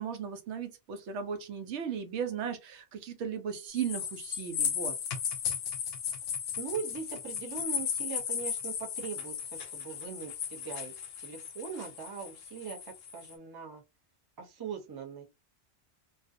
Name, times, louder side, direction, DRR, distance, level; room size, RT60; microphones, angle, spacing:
voice 1, 0.0-4.9, right 7 dB, 85° right, 0.9 m, -36 dB
sound 1, 3.7-13.4, left 7 dB, 70° left, 0.8 m, -36 dB
voice 2, 6.6-13.8 14.4-15.2, right 6 dB, 30° right, 0.5 m, -41 dB
2.4 x 2.2 x 2.5 m
omnidirectional pair, 1.1 m